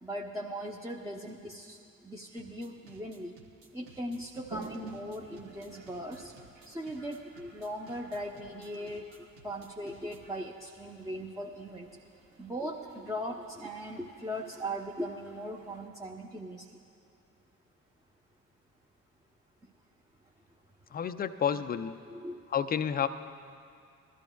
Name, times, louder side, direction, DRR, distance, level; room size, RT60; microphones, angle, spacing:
voice 1, 0.0-3.3 3.7-6.3 6.7-12.0 12.4-16.7 22.1-22.4, equal, 10° right, -1 dB, 0.8 m, -39 dB
sound 1, 2.4-10.4, right 4 dB, 75° right, 1.0 m, -57 dB
Toilet flush, 4.4-15.9, right 4 dB, 40° right, 1.6 m, -52 dB
voice 2, 20.9-22.0 22.5-23.1, left 8 dB, 25° left, 11 dB, 0.5 m, -30 dB
20.5 x 13.5 x 2.3 m, 2.4 s
figure-of-eight pair, 40°, 41 cm